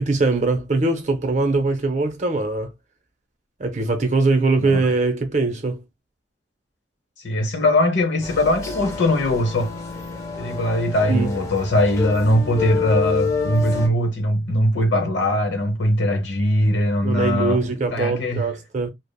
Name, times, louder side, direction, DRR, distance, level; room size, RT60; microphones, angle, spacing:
voice 1, 0.0-2.7 3.6-5.8 11.1-11.3 17.0-18.9, right 3 dB, 40° right, 0.6 m, -21 dB
voice 2, 7.2-9.7 10.4-17.6 17.9-18.5, left 1 dB, 70° left, 0.9 m, -20 dB
sound 1, 8.2-13.9, left 4 dB, 15° left, 0.5 m, -28 dB
3.3 x 2.0 x 2.2 m
head